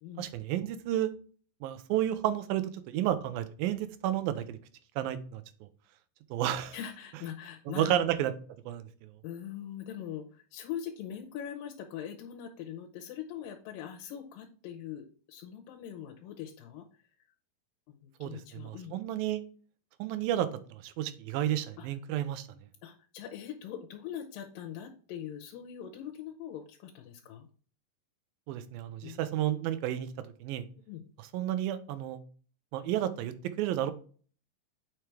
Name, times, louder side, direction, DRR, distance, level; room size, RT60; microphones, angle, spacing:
voice 1, 0.2-1.1 1.6-4.6 5.0-5.4 6.3-6.8 7.7-8.3 8.7-9.1 18.2-19.4 20.0-22.5 28.5-30.1 30.4-30.6 31.3-32.2 32.7-33.9, right 12 dB, 90° right, 12 dB, 2.5 m, -31 dB
voice 2, 6.7-8.0 9.2-16.9 17.9-19.0 21.8-21.9 22.8-27.5 29.0-29.3 30.9-31.0, left 9 dB, 90° left, 2 dB, 2.5 m, -42 dB
7.7 x 5.0 x 3.3 m, 0.41 s
omnidirectional pair, 4.0 m